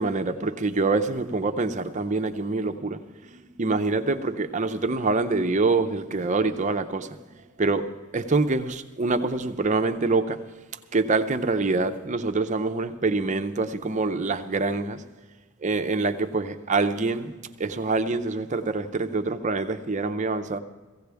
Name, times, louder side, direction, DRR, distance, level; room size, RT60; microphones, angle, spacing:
voice 1, 0.0-3.0 3.3-7.2 7.6-10.5 10.9-15.0 15.6-20.6, right 3 dB, 35° right, 0.6 m, -25 dB
16.5 x 16.0 x 3.4 m
head